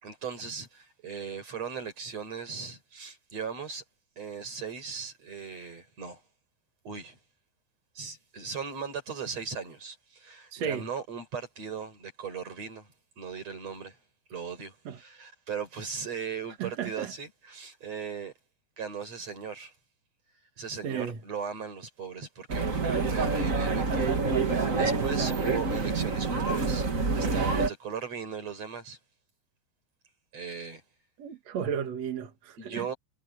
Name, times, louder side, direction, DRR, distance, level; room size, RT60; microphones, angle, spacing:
voice 1, 0.0-3.8 4.2-6.2 6.8-7.2 7.9-14.0 14.3-18.3 18.8-19.7 20.6-26.8 27.1-29.0 30.3-30.8 32.6-32.9, right 6 dB, 35° right, 6.2 m, -38 dB
voice 2, 10.5-10.9 14.9-15.0 16.6-17.1 20.8-21.2 25.2-25.4 31.2-32.8, right 8 dB, 50° right, 2.2 m, -34 dB
sound 1, 22.5-27.7, right 4 dB, 70° right, 0.7 m, -27 dB
omnidirectional pair, 5.1 m